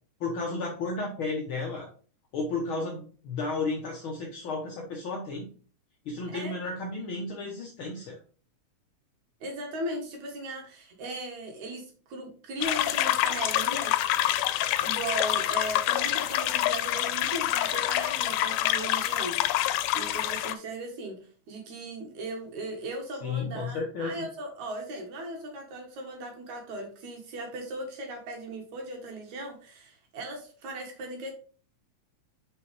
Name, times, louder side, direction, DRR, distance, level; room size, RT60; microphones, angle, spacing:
voice 1, 0.2-1.9 2.3-5.5 6.0-8.2 23.2-24.3, left 3 dB, 65° left, 0 dB, 1.3 m, -33 dB
voice 2, 9.4-14.1 14.8-19.4 19.9-31.3, right 1 dB, 70° right, 2 dB, 2.7 m, -38 dB
sound 1, 12.6-20.5, left 13 dB, 85° left, 2.1 m, -27 dB
6.0 x 5.6 x 3.3 m, 0.41 s
omnidirectional pair, 3.5 m